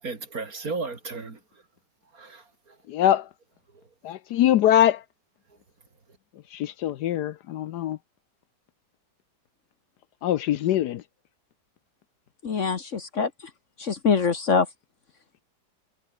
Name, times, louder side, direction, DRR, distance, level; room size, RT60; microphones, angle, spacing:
voice 1, 0.0-1.6 2.1-2.8 3.7-3.9, right 4 dB, 50° right, 3.4 m, -35 dB
voice 2, 2.9-3.3 4.0-5.0 6.5-8.0 10.2-11.0, left 12 dB, 70° left, 1.2 m, -23 dB
voice 3, 12.4-13.3 13.8-14.7, left 5 dB, 45° left, 1.4 m, -24 dB
omnidirectional pair, 1.9 m